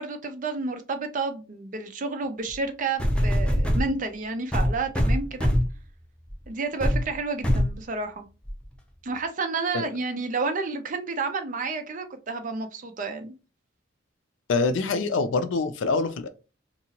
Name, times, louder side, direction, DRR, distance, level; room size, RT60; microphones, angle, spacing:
voice 1, 0.0-5.5 6.5-8.3 9.0-13.3, right 3 dB, 45° right, 0.5 m, -30 dB
sound 1, 2.5-2.6 3.0-3.9 4.5-5.8 6.3-6.4 6.8-7.0 7.4-7.7 8.4-8.5, equal, 5° left, 0.5 m, -23 dB
voice 2, 14.5-16.3, left 3 dB, 75° left, 0.4 m, -25 dB
2.8 x 2.6 x 2.8 m
head